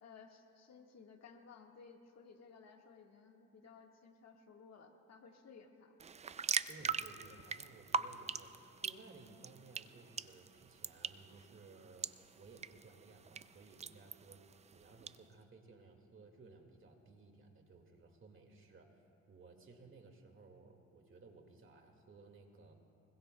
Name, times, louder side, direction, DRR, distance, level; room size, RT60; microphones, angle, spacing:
voice 1, 0.0-6.0, left 5 dB, 60° left, 2 dB, 1.6 m, -58 dB
sound 1, 6.0-15.2, right 6 dB, 25° right, 0.4 m, -43 dB
voice 2, 6.7-19.0 19.3-22.7, right 3 dB, 40° right, 3 dB, 2.0 m, -59 dB
24.5 x 21.5 x 2.3 m, 2.7 s
cardioid pair, 90°, 30 cm